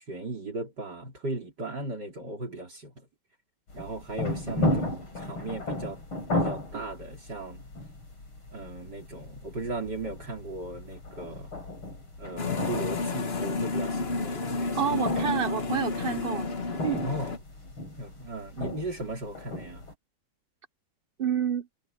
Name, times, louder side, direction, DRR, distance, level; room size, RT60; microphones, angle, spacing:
voice 1, 0.0-3.1 3.7-6.0 6.3-7.6 8.5-11.5 12.2-14.8 17.0-17.4 18.0-19.9, right 2 dB, 50° right, 4.2 m, -37 dB
sound 1, 3.7-19.9, left 1 dB, 70° left, 7.2 m, -35 dB
sound 2, 12.4-17.4, left 3 dB, 35° left, 1.4 m, -31 dB
voice 2, 14.7-16.5 16.8-17.0 21.2-21.7, right 8 dB, 70° right, 0.5 m, -28 dB
omnidirectional pair, 2.4 m